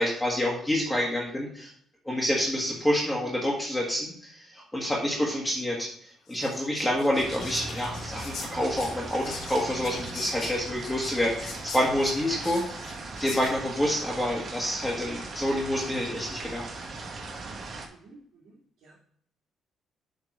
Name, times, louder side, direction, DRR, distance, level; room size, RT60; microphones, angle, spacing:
voice 1, 0.0-1.7 2.0-5.9 6.3-12.8 13.2-16.7, equal, 5° left, -4 dB, 1.5 m, -28 dB
Whispering, 6.3-13.8, left 5 dB, 70° left, 1.9 m, -42 dB
sound 1, 7.1-17.9, right 3 dB, 50° right, 1.3 m, -39 dB
voice 2, 17.9-19.0, right 3 dB, 75° right, -9 dB, 2.6 m, -54 dB
7.4 x 3.7 x 6.2 m, 0.63 s
cardioid pair, 125°, 0 cm